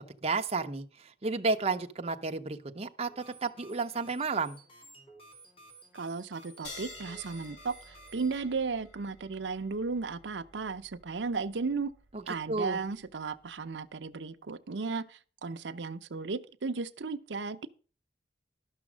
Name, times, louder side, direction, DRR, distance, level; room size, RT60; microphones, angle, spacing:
voice 1, 0.2-4.6 12.1-12.2 12.5-12.8, right 4 dB, 35° right, 0.8 m, -32 dB
sound 1, 3.1-8.4, right 2 dB, 35° left, 2.9 m, -54 dB
voice 2, 5.9-11.9 12.3-17.7, right 4 dB, 90° right, 0.7 m, -35 dB
sound 2, 6.6-13.6, left 2 dB, 90° left, 6.8 m, -52 dB
12.0 x 6.3 x 6.1 m
head